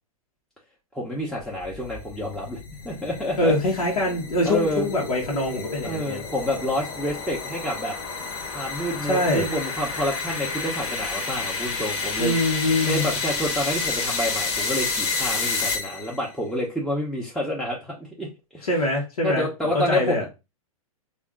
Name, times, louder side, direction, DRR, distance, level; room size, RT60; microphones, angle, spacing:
voice 1, 0.9-3.5 4.4-4.9 5.8-7.9 8.5-12.4 12.8-18.7 19.2-20.3, left 1 dB, ahead, 0.8 m, -28 dB
sound 1, 1.4-16.2, left 4 dB, 40° left, 1.1 m, -30 dB
voice 2, 3.4-6.3 9.1-9.5 12.2-13.1 18.6-19.5 19.7-20.2, left 1 dB, 85° left, 1.1 m, -24 dB
3.4 x 2.5 x 3.5 m
hypercardioid pair, 115°, 18 cm